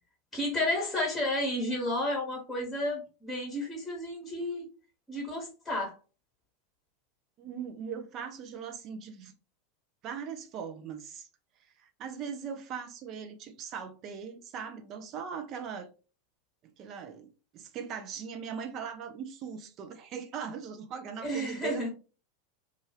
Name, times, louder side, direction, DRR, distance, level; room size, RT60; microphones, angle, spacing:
voice 1, 0.3-4.7 5.1-5.9 21.2-21.9, left 1 dB, 15° left, 1.1 m, -32 dB
voice 2, 7.4-9.3 10.0-11.3 11.8-15.9 16.8-21.9, right 7 dB, 40° right, 0.5 m, -40 dB
2.6 x 2.4 x 3.0 m
figure-of-eight pair, 85°, 0 cm